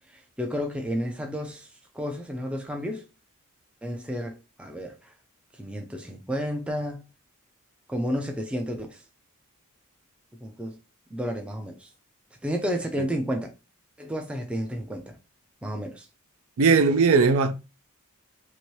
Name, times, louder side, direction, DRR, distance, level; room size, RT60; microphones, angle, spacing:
voice 1, 0.1-1.7 1.9-3.0 3.8-5.1 5.5-7.0 7.9-9.0 10.4-10.8 11.1-11.9 12.4-13.5 14.0-15.2 15.6-16.1, equal, 5° right, 0.4 m, -31 dB
voice 2, 16.6-17.5, right 4 dB, 70° right, 0.4 m, -18 dB
2.8 x 2.6 x 3.1 m
head